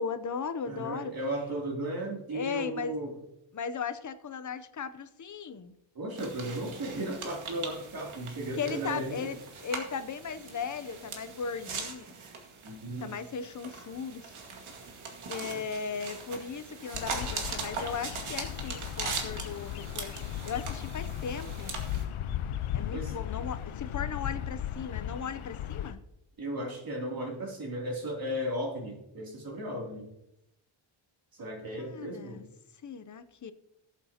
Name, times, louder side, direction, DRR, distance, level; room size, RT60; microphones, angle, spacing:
voice 1, 0.0-1.1 2.3-2.9 3.5-5.7 8.6-12.1 13.0-14.3 15.3-21.8 22.7-26.0 31.8-32.4 32.8-33.5, left 6 dB, 40° left, 12 dB, 0.7 m, -37 dB
voice 2, 0.7-3.2 5.9-9.3 12.6-13.1 15.4-15.6 22.9-23.1 26.4-30.1 31.3-32.4, right 1 dB, 45° right, -1 dB, 2.9 m, -35 dB
sound 1, 6.2-22.0, right 4 dB, 75° right, 2.2 m, -41 dB
Bird vocalization bird call bird song, 16.9-25.9, left 10 dB, 80° left, 0.8 m, -36 dB
19.0 x 8.2 x 2.9 m, 0.86 s
wide cardioid pair, 140°, 49 cm